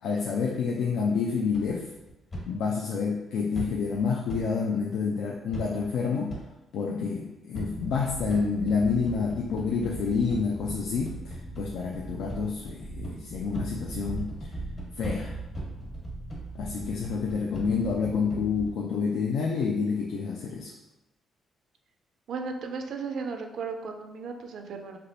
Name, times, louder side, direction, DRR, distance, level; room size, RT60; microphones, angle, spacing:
voice 1, 0.0-1.8 2.5-6.4 6.7-14.3 15.0-15.3 16.5-20.7, left 5 dB, 80° left, -1 dB, 0.4 m, -28 dB
sound 1, 1.5-2.4 3.5-4.4 5.5-6.0 6.3-6.4 7.5-18.7, right 2 dB, 45° left, 1.3 m, -38 dB
voice 2, 22.3-25.0, right 4 dB, 65° right, 4 dB, 0.4 m, -35 dB
3.3 x 2.8 x 2.6 m, 0.99 s
cardioid pair, 90°, 0 cm